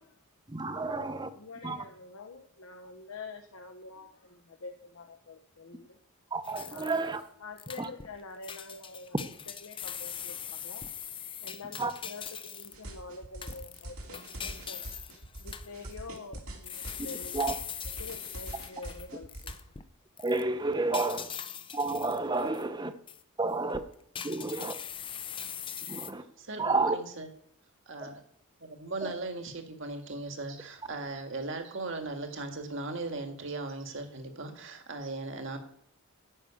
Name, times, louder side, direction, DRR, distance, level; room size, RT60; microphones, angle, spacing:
voice 1, 0.5-1.3 1.6-1.8 6.3-7.2 7.8-7.9 11.8-11.9 17.0-17.1 17.3-17.5 20.2-21.3 21.7-22.9 23.4-23.8 24.2-24.7 25.9-26.2 26.6-27.0 28.0-28.1 29.0-29.1, right 3 dB, 20° right, 0.9 m, -30 dB
voice 2, 1.3-6.0 6.7-7.1 7.4-10.8 11.4-14.8 15.4-17.5 18.0-19.5 20.8-21.2, left 3 dB, 75° left, 1.1 m, -46 dB
sound 1, 6.4-7.2 7.6-8.2 8.4-12.8 13.4-19.9 20.2-20.4 20.9-22.7 23.1-23.2 23.7-26.1, left 8 dB, 25° left, 0.6 m, -41 dB
sound 2, 12.7-19.5, right 1 dB, 80° right, 2.7 m, -44 dB
voice 3, 26.4-27.3 27.9-28.2 28.6-35.6, right 2 dB, 60° right, 1.9 m, -38 dB
11.0 x 5.9 x 8.6 m
head